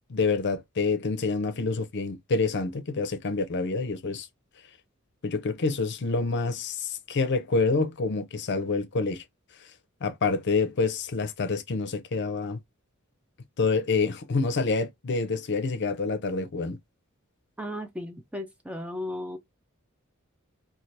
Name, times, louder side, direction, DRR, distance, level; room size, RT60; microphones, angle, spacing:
voice 1, 0.1-4.3 5.2-9.2 10.0-12.6 13.6-16.8, left 4 dB, 55° left, 0.6 m, -27 dB
voice 2, 17.6-19.4, left 1 dB, 5° right, 0.3 m, -35 dB
2.8 x 2.3 x 3.1 m
head